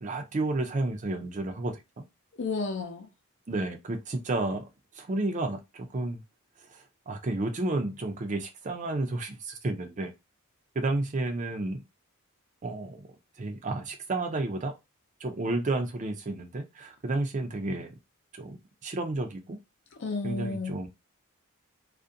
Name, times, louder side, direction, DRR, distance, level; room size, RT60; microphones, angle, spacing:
voice 1, 0.0-1.8 3.5-4.7 5.0-6.2 6.7-10.1 10.8-11.8 12.6-13.1 13.4-14.7 15.2-17.9 18.3-19.6 20.2-20.9, right 2 dB, 35° right, 0.4 m, -31 dB
voice 2, 2.4-3.1 19.9-20.8, left 4 dB, 55° left, 0.5 m, -32 dB
2.4 x 2.1 x 2.6 m
head